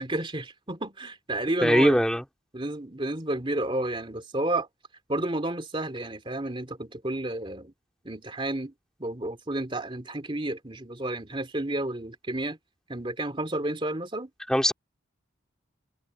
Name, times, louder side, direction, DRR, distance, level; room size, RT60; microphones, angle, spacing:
voice 1, 0.0-2.0 2.5-4.7 5.1-7.7 8.0-8.7 9.0-12.6 12.9-14.3, right 1 dB, 25° right, 2.6 m, -31 dB
voice 2, 1.6-2.2 14.5-14.7, equal, 5° left, 3.1 m, -20 dB
head